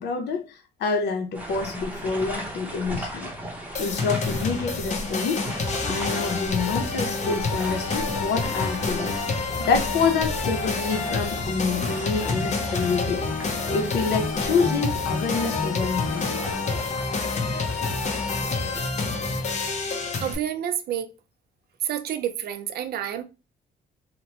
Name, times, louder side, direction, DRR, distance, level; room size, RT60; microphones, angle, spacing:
voice 1, 0.0-3.3 3.8-5.4 5.9-9.1 9.6-13.2 13.7-16.4, left 5 dB, 85° left, 0.7 m, -27 dB
sound 1, 1.3-18.8, right 1 dB, 10° right, 0.8 m, -38 dB
sound 2, 3.7-20.3, left 4 dB, 45° left, 0.7 m, -28 dB
voice 2, 20.2-21.1 21.8-23.2, right 10 dB, 65° right, 0.5 m, -29 dB
2.9 x 2.1 x 2.8 m
cardioid pair, 120°, 17 cm